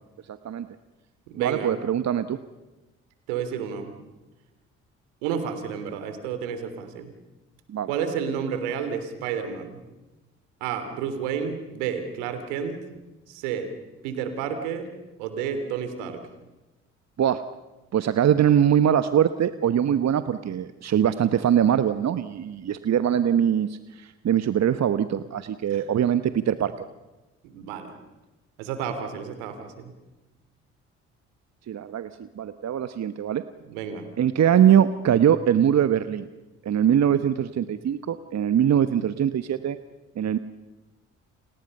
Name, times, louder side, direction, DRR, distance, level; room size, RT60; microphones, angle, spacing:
voice 1, 0.3-0.7 1.4-2.4 7.7-7.9 17.2-17.4 17.9-26.9 31.7-32.1 32.4-33.4 34.2-36.3 36.6-39.8 40.2-40.4, right 9 dB, 45° right, 12 dB, 1.2 m, -22 dB
voice 2, 1.3-1.7 3.3-4.0 5.2-7.1 7.9-9.8 10.6-12.8 13.3-13.7 14.0-14.9 15.2-16.2 25.7-25.8 27.5-27.9 28.6-29.9 33.6-34.1, right 7 dB, 75° right, 8 dB, 3.4 m, -31 dB
30.0 x 27.5 x 5.6 m, 1.1 s
hypercardioid pair, 50°, 36 cm